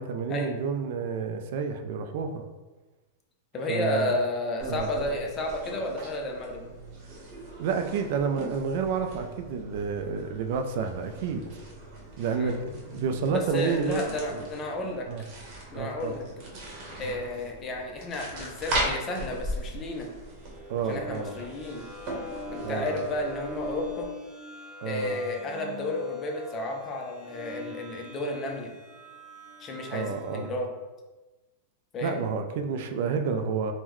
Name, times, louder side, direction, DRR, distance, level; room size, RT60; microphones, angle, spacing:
voice 1, 0.0-2.5 3.7-4.1 4.7-4.9 7.6-11.4 12.2-12.6 12.9-14.5 15.1-15.2 15.7-16.1 17.0-17.2 20.7-21.3 22.6-23.0 24.8-25.2 29.9-30.5 32.0-33.7, right 5 dB, 60° right, 6 dB, 0.3 m, -30 dB
voice 2, 3.5-6.7 12.3-12.6 13.3-15.1 15.7-16.2 17.0-20.1 20.8-21.9 22.5-24.1 24.8-28.7 29.6-30.7 31.9-32.2, left 2 dB, 25° left, 2 dB, 0.5 m, -32 dB
sound 1, 4.6-24.1, right 1 dB, 40° right, 1.0 m, -39 dB
sound 2, 20.3-30.6, left 2 dB, ahead, 1.0 m, -41 dB
3.6 x 2.1 x 3.0 m, 1.2 s
supercardioid pair, 145°, 0 cm